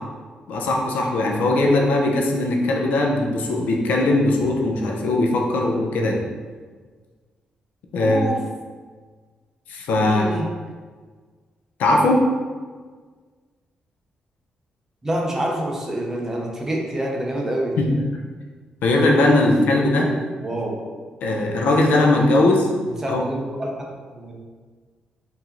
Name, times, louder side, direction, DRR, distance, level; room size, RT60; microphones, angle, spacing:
voice 1, 0.5-6.2 7.9-8.2 9.7-10.3 11.8-12.2 17.8-17.9 18.8-20.1 21.2-22.7 23.1-23.2, left 2 dB, 85° left, 0 dB, 0.7 m, -19 dB
voice 2, 8.0-8.4 10.0-10.5 15.0-17.8 20.0-20.8 22.8-23.7 24.1-24.3, right 1 dB, 15° right, -1 dB, 0.7 m, -27 dB
4.6 x 2.8 x 3.9 m, 1.5 s
cardioid pair, 135°, 3 cm